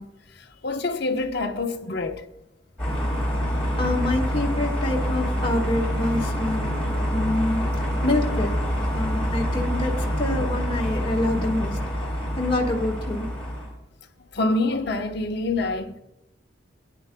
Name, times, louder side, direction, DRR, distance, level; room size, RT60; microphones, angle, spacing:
voice 1, 0.0-2.2 12.0-12.1 14.3-16.0, left 2 dB, 60° left, 1.1 m, -27 dB
sound 1, 2.8-13.7, equal, 5° left, 4.7 m, -26 dB
voice 2, 3.8-7.7 8.0-8.6 8.9-11.8 12.4-13.3, left 2 dB, 30° left, 1.8 m, -26 dB
20.5 x 10.5 x 2.3 m
head